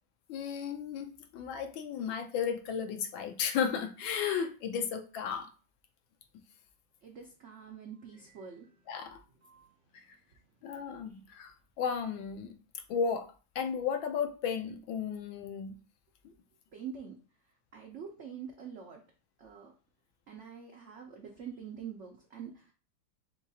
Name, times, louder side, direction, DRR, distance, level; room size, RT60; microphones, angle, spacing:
voice 1, 0.3-5.5 8.9-9.2 9.9-10.0 10.6-12.5 12.9-13.3 13.5-15.8, left 7 dB, 80° left, 6 dB, 1.4 m, -34 dB
voice 2, 7.0-8.8 9.3-9.7 16.7-17.2 17.7-19.0 19.4-19.7 20.3-22.7, right 7 dB, 75° right, 1 dB, 0.6 m, -45 dB
4.4 x 2.4 x 4.0 m, 0.35 s
omnidirectional pair, 2.1 m